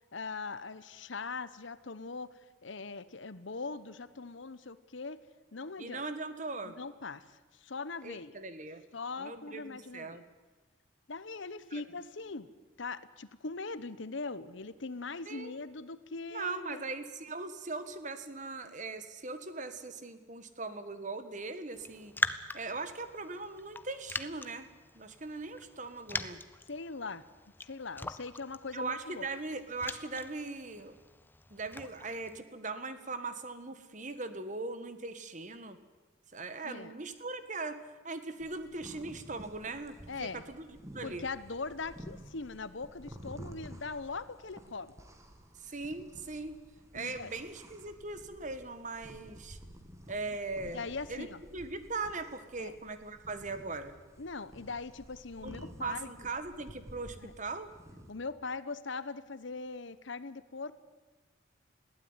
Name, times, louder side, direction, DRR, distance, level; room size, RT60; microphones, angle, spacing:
voice 1, 0.1-2.3 2.6-5.2 5.5-6.0 6.6-8.4 8.9-10.2 11.1-12.5 12.8-16.8 26.7-27.2 27.6-29.3 36.6-36.9 40.1-40.4 41.0-44.9 46.9-47.3 50.7-51.4 52.6-52.7 54.2-56.1 57.2-57.3 58.1-60.7, left 4 dB, 65° left, 15 dB, 1.0 m, -41 dB
voice 2, 5.8-6.8 8.0-8.8 9.2-10.2 11.7-11.8 15.2-15.5 16.3-22.1 22.5-24.7 24.9-26.4 28.7-30.9 31.5-35.8 36.3-39.9 40.2-40.7 40.9-41.2 45.5-46.6 46.9-49.6 50.1-53.9 55.4-57.7, right 3 dB, 35° right, 11 dB, 1.5 m, -40 dB
Raindrop, 21.7-32.4, left 2 dB, 10° left, 0.7 m, -42 dB
sound 1, 38.4-58.1, equal, 15° right, 2.0 m, -52 dB
21.0 x 16.5 x 9.7 m, 1.2 s
head